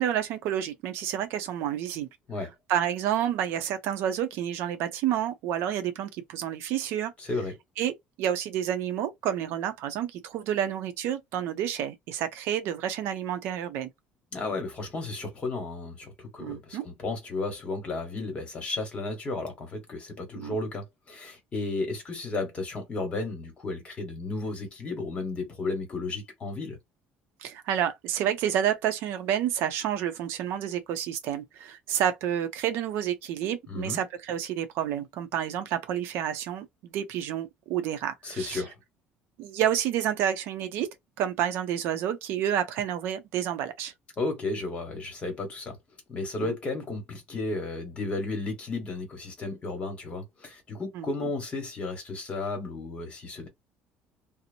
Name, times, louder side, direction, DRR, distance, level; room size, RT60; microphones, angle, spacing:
voice 1, 0.0-2.1 2.7-7.1 7.8-13.9 16.4-16.8 20.3-20.6 27.4-38.6 39.4-40.9 41.2-43.9 46.4-46.5 50.9-51.3, right 10 dB, 70° right, 0.5 m, -29 dB
voice 2, 7.2-7.5 14.3-26.8 33.7-34.0 38.2-38.7 44.2-45.8 46.1-53.5, left 3 dB, 30° left, 1.2 m, -33 dB
2.7 x 2.0 x 2.6 m
cardioid pair, 150°, 4 cm